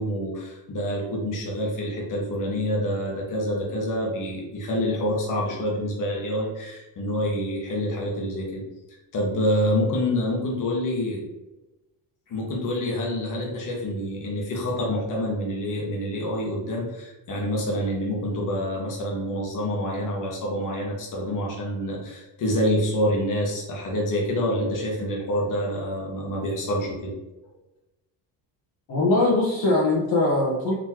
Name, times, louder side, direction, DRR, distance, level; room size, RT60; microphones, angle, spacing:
voice 1, 0.0-8.6 9.1-11.2 12.3-27.1 27.4-27.5, equal, 45° left, -2 dB, 1.3 m, -27 dB
voice 2, 28.9-30.7, left 2 dB, 60° left, -5 dB, 1.2 m, -21 dB
4.2 x 3.1 x 2.9 m, 1.0 s
cardioid pair, 115°, 42 cm